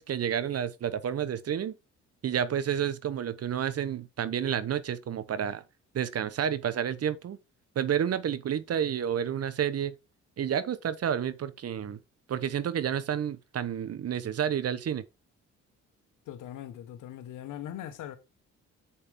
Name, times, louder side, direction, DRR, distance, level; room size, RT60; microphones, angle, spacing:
voice 1, 0.0-1.7 2.2-5.6 5.9-7.4 7.7-9.9 10.4-12.0 12.3-15.0, right 9 dB, 55° right, 1.1 m, -30 dB
voice 2, 16.3-18.2, left 11 dB, 85° left, 1.5 m, -40 dB
7.9 x 7.0 x 3.6 m
cardioid pair, 90°, 30 cm